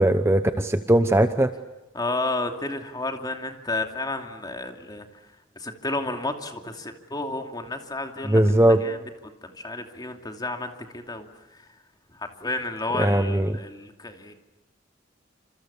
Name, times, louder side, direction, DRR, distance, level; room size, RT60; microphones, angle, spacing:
voice 1, 0.0-1.5 8.3-8.8 13.0-13.5, right 1 dB, 15° right, 9 dB, 0.9 m, -19 dB
voice 2, 1.9-5.3 5.6-9.1 9.4-11.7 12.1-14.3, left 2 dB, 20° left, 4 dB, 2.7 m, -32 dB
28.5 x 27.0 x 7.1 m, 0.99 s
head